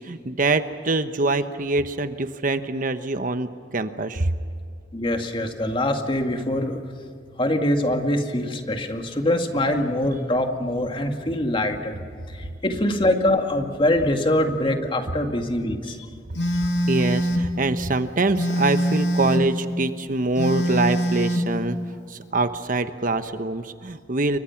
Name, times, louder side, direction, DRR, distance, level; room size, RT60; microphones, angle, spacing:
voice 1, 0.0-4.3 16.9-21.8 22.1-24.4, right 2 dB, 50° right, 10 dB, 1.1 m, -24 dB
voice 2, 4.9-6.8 7.4-12.0 12.3-16.1 16.6-16.9, left 1 dB, 30° left, 5 dB, 2.1 m, -24 dB
Telephone, 16.4-17.5 18.4-19.5 20.4-21.5, equal, 75° left, 3.0 m, -23 dB
29.5 x 23.5 x 5.9 m, 2.3 s
head